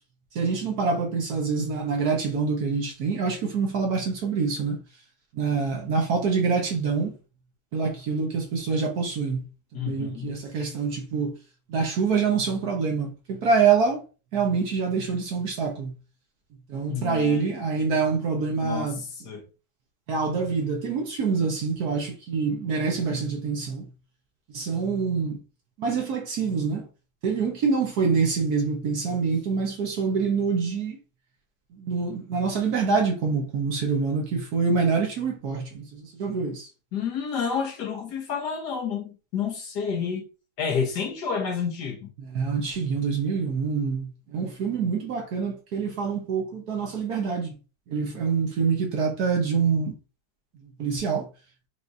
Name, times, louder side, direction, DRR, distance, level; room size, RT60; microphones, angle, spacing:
voice 1, 0.3-4.8 5.3-7.1 7.7-9.5 9.7-11.3 11.7-14.0 14.3-15.9 16.7-19.0 20.1-23.8 24.5-25.4 25.8-26.8 27.2-31.0 31.8-36.7 42.3-47.5 47.9-49.9 50.8-51.3, right 5 dB, 60° right, 1.3 m, -26 dB
voice 2, 9.7-10.3 16.9-17.4 18.6-19.4 36.9-40.3 40.6-42.1, left 6 dB, 60° left, 1.4 m, -30 dB
4.9 x 3.0 x 2.6 m
omnidirectional pair, 2.1 m